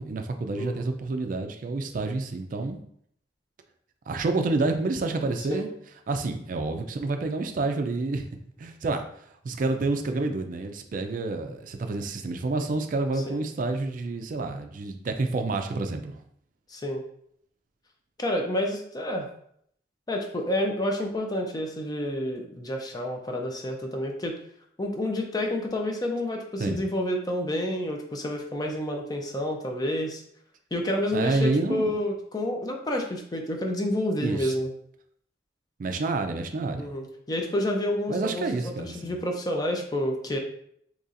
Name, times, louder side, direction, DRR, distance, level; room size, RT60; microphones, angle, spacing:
voice 1, 0.0-2.8 4.1-5.7 6.1-8.2 8.6-16.2 26.6-26.8 31.1-31.9 34.2-34.5 35.8-36.9 38.1-39.2, right 3 dB, 50° right, 6 dB, 0.4 m, -29 dB
voice 2, 0.6-0.9 5.5-5.7 16.7-17.0 18.2-19.3 20.1-24.4 24.8-30.2 30.7-34.7 36.8-40.4, left 1 dB, 20° left, 2 dB, 0.5 m, -29 dB
4.1 x 3.0 x 2.5 m, 0.68 s
head